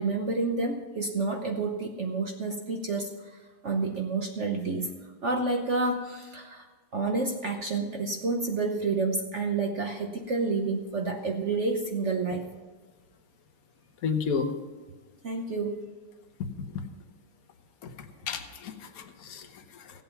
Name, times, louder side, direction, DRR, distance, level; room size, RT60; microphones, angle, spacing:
voice 1, 0.0-4.9 5.2-6.7 6.9-12.5 15.2-15.8, right 3 dB, 50° right, 3 dB, 0.8 m, -29 dB
voice 2, 14.0-14.5 16.6-16.8 17.8-20.0, left 5 dB, 50° left, 6 dB, 1.2 m, -33 dB
16.5 x 7.9 x 5.8 m, 1.3 s
omnidirectional pair, 2.4 m